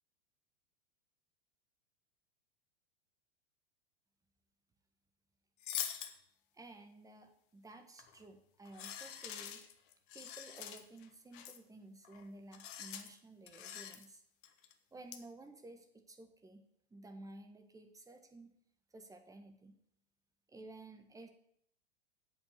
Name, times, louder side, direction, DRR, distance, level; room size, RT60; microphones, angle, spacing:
sound 1, 5.6-6.1 8.0-8.2 8.7-11.1 11.3-11.6 12.0-12.2 12.5-13.1 13.5-14.1 14.4-14.7 15.1-15.2, left 10 dB, 50° left, 1.4 m, -44 dB
voice 1, 6.5-9.6 10.1-14.2 14.9-16.6 16.9-18.5 18.9-19.7 20.5-21.3, right 2 dB, 10° right, 6 dB, 1.6 m, -54 dB
8.3 x 7.0 x 7.8 m, 0.70 s
figure-of-eight pair, 95°, 33 cm